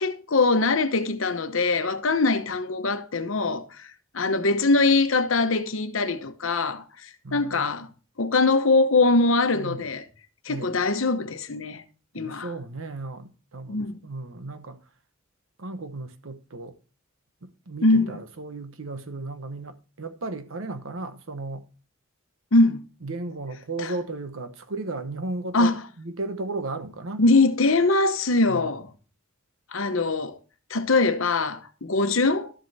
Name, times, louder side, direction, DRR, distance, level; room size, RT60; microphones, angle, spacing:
voice 1, 0.0-3.9 4.1-6.8 7.3-7.9 8.2-10.0 10.4-11.8 12.1-12.5 13.7-14.0 17.8-18.2 22.5-22.8 23.8-23.9 25.5-25.8 27.2-28.9 29.7-30.4 30.7-32.5, left 3 dB, 70° left, 1.0 m, -22 dB
voice 2, 7.2-7.7 9.5-9.9 10.5-10.8 12.1-14.8 15.6-16.7 17.4-21.7 23.0-27.2 28.5-28.7, right 2 dB, 70° right, 1.0 m, -35 dB
13.0 x 7.7 x 2.8 m
head